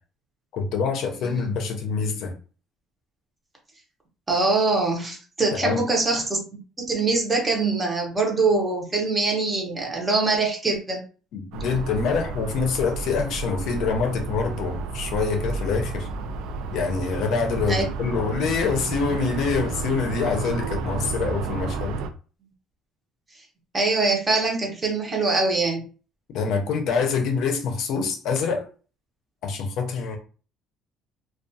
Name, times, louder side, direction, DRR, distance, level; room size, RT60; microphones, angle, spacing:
voice 1, 0.5-2.3 5.5-5.9 11.3-16.1 16.7-22.0 26.3-28.7 29.4-30.2, left 5 dB, 60° left, 0.5 m, -25 dB
voice 2, 1.2-1.5 4.3-6.4 6.8-11.0 17.7-17.9 23.7-25.8, right 3 dB, 15° right, 0.7 m, -23 dB
sound 1, 11.5-22.1, right 5 dB, 80° right, 0.3 m, -31 dB
2.3 x 2.2 x 2.6 m
cardioid pair, 155°, 0 cm